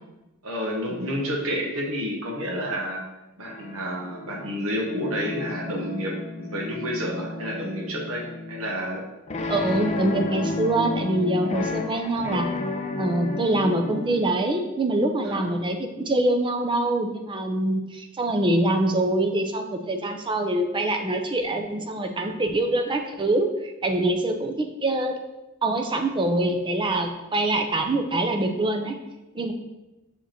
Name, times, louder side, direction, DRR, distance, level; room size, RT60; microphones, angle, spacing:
voice 1, 0.4-3.0 3.4-9.0 15.2-15.6, equal, 75° right, 0 dB, 1.1 m, -30 dB
sound 1, 3.4-14.2, left 2 dB, 30° left, 0.5 m, -32 dB
voice 2, 9.5-12.5 13.0-25.1 25.6-29.0 29.3-29.5, right 1 dB, 25° right, 5 dB, 0.6 m, -24 dB
6.7 x 5.1 x 2.9 m, 1.0 s
head